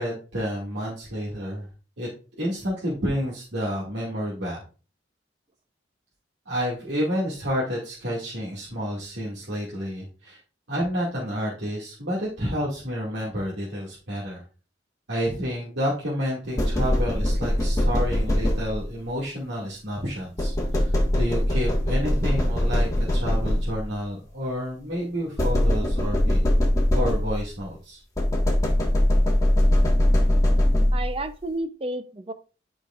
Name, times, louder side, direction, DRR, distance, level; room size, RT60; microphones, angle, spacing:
voice 1, 0.0-1.7 2.0-2.1 2.4-4.6 6.5-10.4 10.7-14.4 15.1-26.4 26.9-28.0, equal, 70° right, -6 dB, 2.2 m, -30 dB
sound 1, 16.6-19.0 20.4-24.0 25.4-27.6 28.2-31.2, left 1 dB, 20° left, 1.6 m, -22 dB
voice 2, 30.9-32.3, right 2 dB, 30° right, 10 dB, 0.6 m, -31 dB
12.0 x 5.1 x 2.5 m, 0.36 s
head